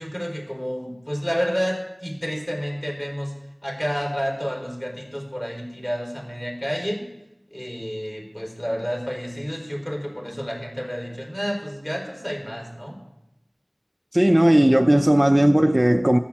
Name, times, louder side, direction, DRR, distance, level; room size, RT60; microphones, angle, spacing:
voice 1, 0.0-3.3 3.6-7.0 7.5-13.0, equal, 25° left, 4.0 m, -30 dB
voice 2, 14.1-16.2, right 1 dB, 20° right, 0.5 m, -16 dB
13.5 x 7.0 x 7.3 m
wide cardioid pair, 40°, 0 cm